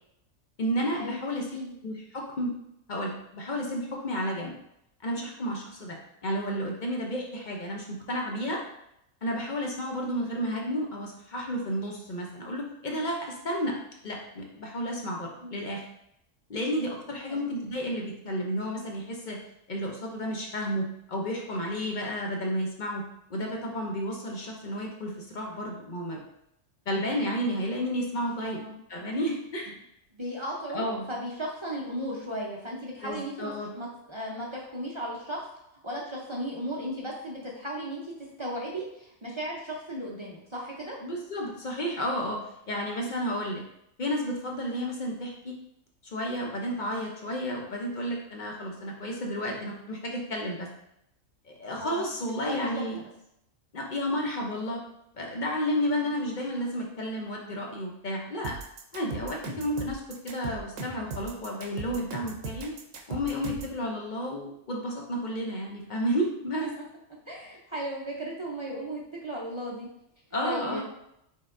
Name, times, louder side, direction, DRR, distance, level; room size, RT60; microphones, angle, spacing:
voice 1, 0.6-1.5 1.8-2.5 2.9-4.5 5.0-6.0 6.2-8.6 9.2-13.7 14.0-15.8 16.5-19.4 19.7-23.0 23.3-26.2 26.9-28.6 28.9-29.7 30.7-31.0 33.0-33.7 41.0-42.4 42.7-43.6 44.0-45.6 46.0-50.7 51.5-53.0 53.7-54.8 55.1-58.6 58.9-62.7 63.1-66.7 70.3-70.8, equal, 45° left, 0 dB, 0.7 m, -32 dB
voice 2, 28.4-28.8 30.1-35.4 35.8-41.0 43.0-43.2 51.8-52.1 52.5-53.0 55.9-56.1 67.3-69.9 70.4-70.8, equal, 35° right, -3 dB, 0.5 m, -36 dB
sound 1, 58.4-63.8, right 4 dB, 75° right, 1.1 m, -38 dB
5.5 x 3.5 x 2.5 m, 0.79 s
omnidirectional pair, 1.4 m